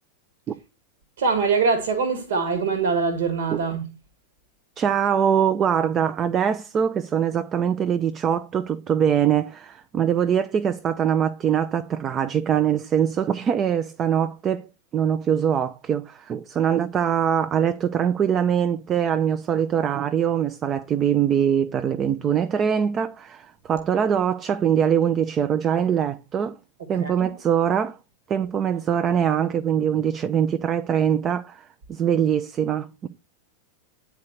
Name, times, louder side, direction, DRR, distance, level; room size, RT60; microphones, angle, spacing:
voice 1, 1.2-3.9 27.0-27.3, right 5 dB, 60° right, 1.6 m, -23 dB
voice 2, 4.8-14.7 14.9-26.6 26.9-28.0 28.3-33.1, right 8 dB, 25° right, 0.6 m, -23 dB
9.5 x 4.7 x 6.5 m
figure-of-eight pair, 90°, 0 cm